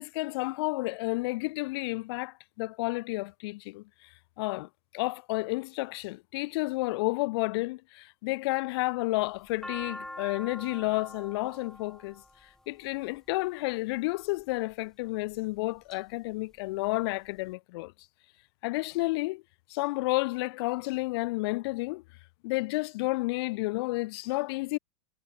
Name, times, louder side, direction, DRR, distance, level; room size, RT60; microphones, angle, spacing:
voice 1, 0.0-3.8 4.4-4.7 4.9-12.2 12.7-17.9 18.6-19.4 19.7-22.0 22.4-24.8, left 22 dB, 50° left, 0.5 m, -31 dB
sound 1, 9.2-13.4 14.2-14.7 15.3-16.0 16.3-16.4 16.6-17.4, left 1 dB, 5° left, 3.5 m, -44 dB
hypercardioid pair, 105°, 17 cm